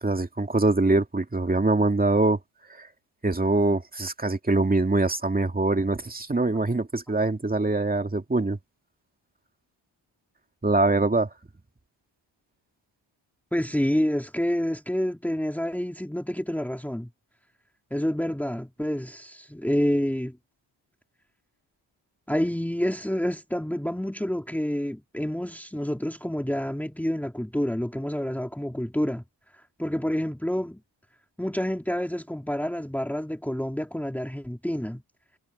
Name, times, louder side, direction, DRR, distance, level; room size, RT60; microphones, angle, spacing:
voice 1, 0.0-2.4 2.8-2.9 3.2-8.6 10.6-11.3, right 2 dB, 20° right, 2.3 m, -23 dB
voice 2, 13.5-17.1 17.9-20.4 22.3-29.2 29.8-30.8 31.4-35.0, equal, 5° left, 3.0 m, -28 dB
cardioid pair, 85°, 45 cm